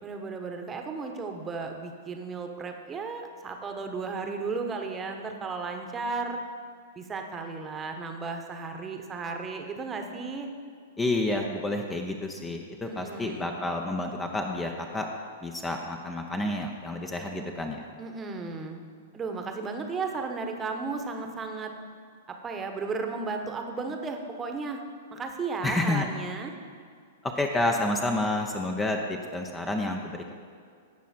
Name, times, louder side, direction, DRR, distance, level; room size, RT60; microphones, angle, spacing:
voice 1, 0.0-6.4 7.0-10.5 12.8-13.5 18.0-18.8 19.1-21.7 22.3-24.8 25.1-26.5, right 4 dB, 20° right, 4 dB, 1.2 m, -34 dB
voice 2, 11.0-15.1 15.4-17.9 25.6-26.1 27.2-30.3, left 2 dB, 15° left, 3 dB, 0.9 m, -29 dB
17.5 x 6.2 x 4.4 m, 2.2 s
figure-of-eight pair, 105°, 0 cm